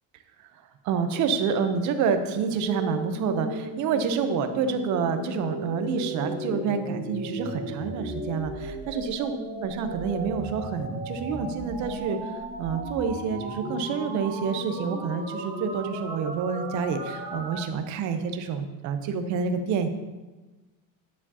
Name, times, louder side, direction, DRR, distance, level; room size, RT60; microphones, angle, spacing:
voice 1, 0.8-9.3 9.6-19.9, right 6 dB, 50° right, 8 dB, 0.7 m, -28 dB
sound 1, 2.6-17.6, right 1 dB, 20° right, 1.0 m, -35 dB
9.3 x 7.3 x 2.8 m, 1.2 s
cardioid pair, 180°, 36 cm